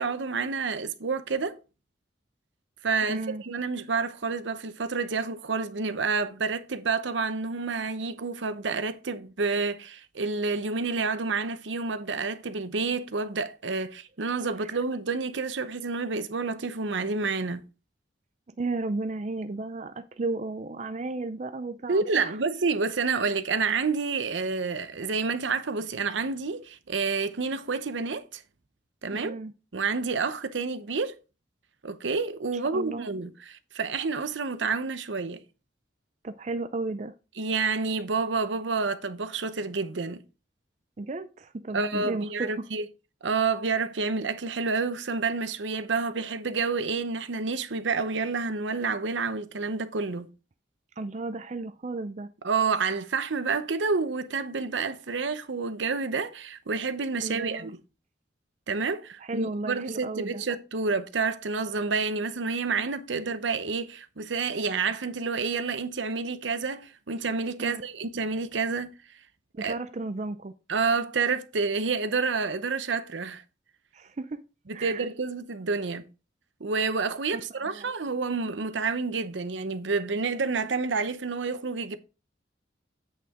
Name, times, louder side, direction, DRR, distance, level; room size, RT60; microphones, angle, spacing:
voice 1, 0.0-1.6 2.8-17.6 21.9-28.4 29.0-29.3 29.7-31.1 31.8-35.4 37.4-40.2 41.7-42.9 43.2-50.3 52.4-57.7 58.7-68.9 69.6-69.8 70.7-73.4 74.7-76.0 76.6-82.0, right 4 dB, 85° right, 0.8 m, -29 dB
voice 2, 3.1-3.4 18.6-22.4 29.1-29.5 32.7-33.1 36.2-37.1 41.0-42.7 51.0-52.3 57.2-57.7 59.2-60.4 67.6-67.8 69.5-70.5 73.9-74.4 74.7-75.0 77.3-77.4 77.7-77.9, right 3 dB, 40° right, 0.5 m, -34 dB
8.5 x 5.5 x 3.6 m
head